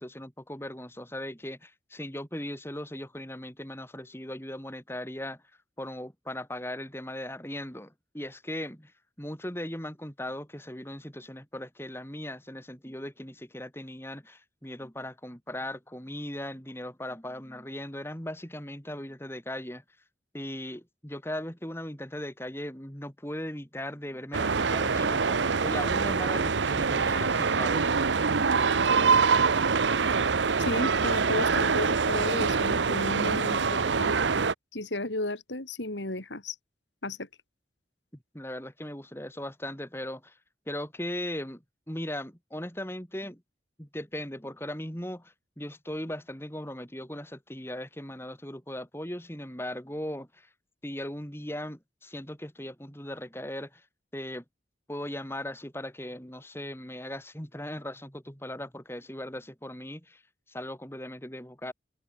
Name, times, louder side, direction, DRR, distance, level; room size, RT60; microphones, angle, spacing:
voice 1, 0.0-5.4 5.8-19.8 20.3-27.9 38.3-40.4 40.7-43.4 43.8-50.5 50.8-53.9 54.1-54.4 54.9-60.2 60.5-61.7, left 1 dB, 15° left, 5.6 m, -38 dB
sound 1, 24.3-34.5, right 5 dB, 90° right, 0.9 m, -25 dB
voice 2, 30.6-34.2 34.7-36.6 37.0-37.3, left 2 dB, 90° left, 3.6 m, -33 dB
head